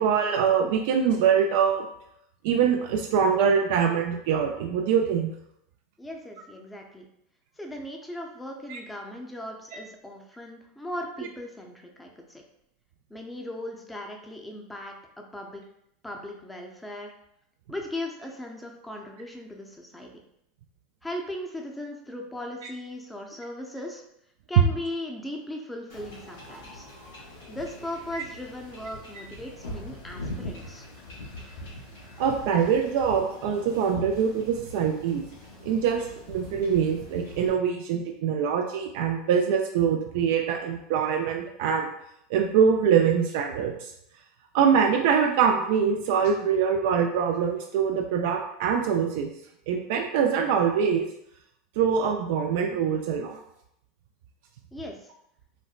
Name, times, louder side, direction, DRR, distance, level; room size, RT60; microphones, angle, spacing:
voice 1, 0.0-1.9 2.4-5.3 8.7-8.8 28.1-28.2 32.2-35.2 35.6-36.0 36.3-41.9 42.3-43.9 44.5-49.3 49.7-51.1 51.8-53.4, right 7 dB, 70° right, 2 dB, 0.3 m, -24 dB
voice 2, 6.0-7.1 7.6-12.4 13.1-15.6 16.0-17.1 17.7-20.1 21.0-24.0 24.5-26.9 27.5-30.9 54.7-55.1, left 1 dB, 10° left, 1 dB, 0.6 m, -38 dB
Wind / Ocean / Boat Water vehicle, 25.9-37.5, left 1 dB, 80° left, 1.0 m, -42 dB
4.1 x 2.1 x 2.4 m, 0.76 s
hypercardioid pair, 100°, 0 cm